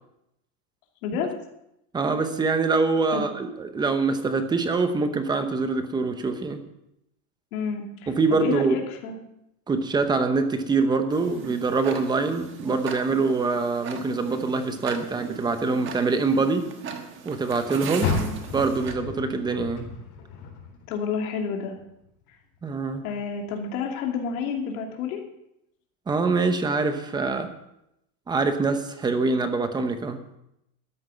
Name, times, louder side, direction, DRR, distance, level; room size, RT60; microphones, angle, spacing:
voice 1, 1.0-1.3 3.1-3.2 7.5-9.1 18.1-18.4 20.9-21.7 23.0-25.2, left 6 dB, 75° left, 1 dB, 2.8 m, -30 dB
voice 2, 1.9-6.6 8.1-8.8 9.7-16.7 17.2-18.1 18.5-19.9 22.6-23.0 26.1-27.5 28.3-30.2, right 4 dB, 10° right, 8 dB, 0.8 m, -24 dB
Tick-tock, 11.1-18.9, right 6 dB, 30° right, 1.3 m, -38 dB
Car, 18.0-21.2 21.6-23.0 23.5-23.6 24.2-24.3, left 4 dB, 50° left, 4.0 m, -32 dB
13.0 x 10.0 x 5.6 m, 0.83 s
supercardioid pair, 170°, 43 cm